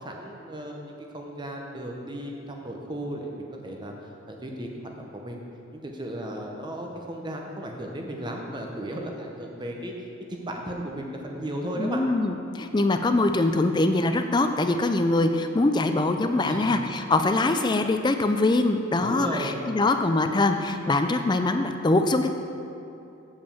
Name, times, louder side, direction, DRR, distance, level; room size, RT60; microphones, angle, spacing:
voice 1, 0.0-3.9 4.3-5.4 5.7-9.9 10.3-12.0 16.4-16.8 19.0-19.6, right 1 dB, 20° right, 1 dB, 0.8 m, -35 dB
voice 2, 11.8-22.3, left 2 dB, 20° left, 7 dB, 0.4 m, -23 dB
7.5 x 5.2 x 7.0 m, 2.7 s
head